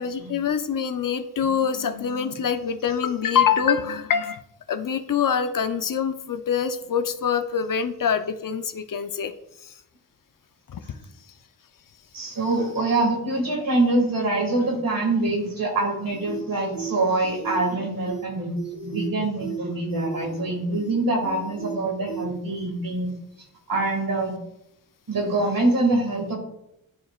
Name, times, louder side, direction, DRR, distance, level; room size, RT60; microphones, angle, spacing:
voice 1, 0.0-4.4 4.7-9.3 9.6-9.7 10.7-10.8, left 7 dB, 60° left, 9 dB, 0.6 m, -25 dB
voice 2, 12.1-18.5 18.8-23.1 23.7-24.4 25.1-26.4, right 2 dB, 65° right, 0 dB, 2.0 m, -24 dB
sound 1, 16.1-16.4 16.7-16.9 17.2-17.7 18.1-18.2 18.6-19.1 19.4-19.6 19.9-20.4 20.7-20.9 21.2-21.7 22.1-22.2, right 7 dB, 25° right, 1.7 m, -35 dB
11.5 x 4.2 x 2.4 m, 0.80 s
wide cardioid pair, 70°, 36 cm